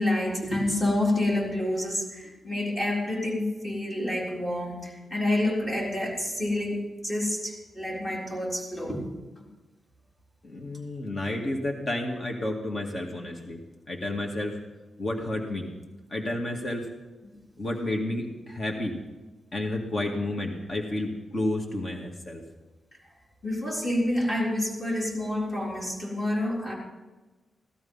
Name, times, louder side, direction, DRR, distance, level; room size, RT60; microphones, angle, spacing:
voice 1, 0.0-9.0 9.4-9.5 23.4-26.7, left 1 dB, 20° left, -3 dB, 3.9 m, -28 dB
voice 2, 10.4-13.6 13.9-14.5 15.0-15.7 16.1-16.9 17.6-18.9 19.5-22.4, left 1 dB, 40° left, 0 dB, 2.1 m, -31 dB
16.5 x 12.5 x 5.6 m, 1.2 s
wide cardioid pair, 135°, 0 cm